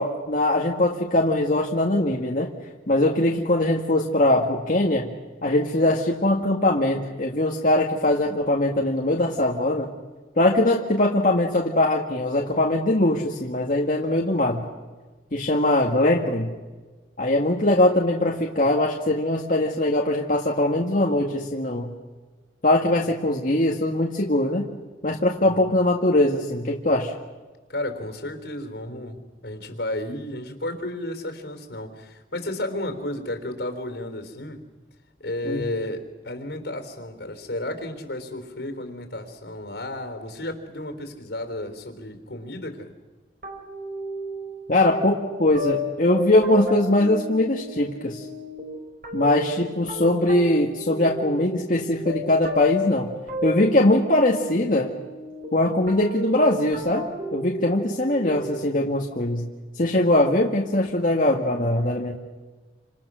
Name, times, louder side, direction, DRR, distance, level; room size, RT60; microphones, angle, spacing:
voice 1, 0.0-2.5 2.9-5.1 5.4-9.9 10.4-14.6 15.3-16.5 17.2-21.9 22.6-24.7 25.0-27.1 35.5-35.6 44.7-48.2 49.1-53.1 53.4-54.9 55.5-59.5 59.8-62.2, left 1 dB, 50° left, -1 dB, 1.8 m, -21 dB
voice 2, 27.7-34.6 35.2-42.9, left 1 dB, 75° left, 7 dB, 3.7 m, -33 dB
sound 1, 43.4-58.8, left 1 dB, 50° right, 5.5 m, -33 dB
29.0 x 26.5 x 6.3 m, 1.3 s
head